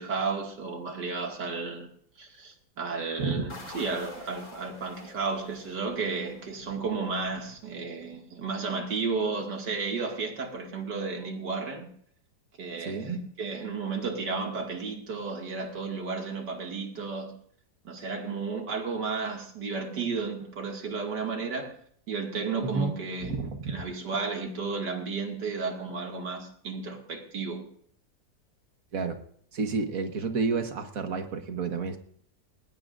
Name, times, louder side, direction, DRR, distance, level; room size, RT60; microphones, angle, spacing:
voice 1, 0.0-1.9 2.2-11.9 12.6-17.3 17.8-21.7 22.1-23.4 23.7-27.6, right 4 dB, 85° right, 2.8 m, -33 dB
sound 1, 3.5-8.0, left 2 dB, 60° left, 3.4 m, -47 dB
voice 2, 22.6-22.9 23.2-23.7 28.9-29.2 29.5-32.0, right 4 dB, 55° right, 1.7 m, -30 dB
20.0 x 19.0 x 2.6 m
omnidirectional pair, 1.8 m